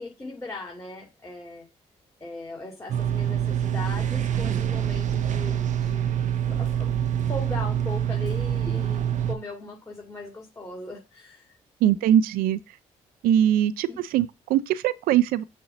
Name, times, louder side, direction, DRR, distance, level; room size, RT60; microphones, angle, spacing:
voice 1, 0.0-1.7 2.2-6.1 6.4-7.0 7.3-11.6 11.9-12.2 13.9-14.0, left 2 dB, 20° left, 2.2 m, -39 dB
sound 1, 2.9-9.3, right 9 dB, 55° right, 0.8 m, -26 dB
voice 2, 11.8-12.6 13.2-15.4, right 11 dB, 80° right, 0.5 m, -21 dB
6.7 x 2.8 x 5.7 m
supercardioid pair, 55°, 15 cm